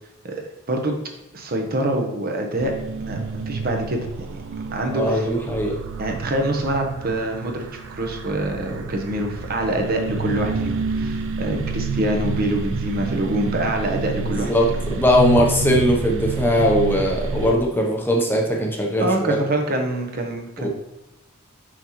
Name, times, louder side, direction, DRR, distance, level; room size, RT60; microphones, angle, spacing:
voice 1, 0.2-0.9 1.3-2.7 3.0-4.3 4.7-5.3 6.0-14.5 19.0-20.7, right 1 dB, 45° right, 3 dB, 0.9 m, -25 dB
sound 1, 2.6-17.5, right 4 dB, 60° right, 0.4 m, -29 dB
voice 2, 4.9-5.8 14.2-19.3 20.6-20.7, equal, 10° left, 0 dB, 0.7 m, -20 dB
6.0 x 5.6 x 3.0 m, 0.93 s
head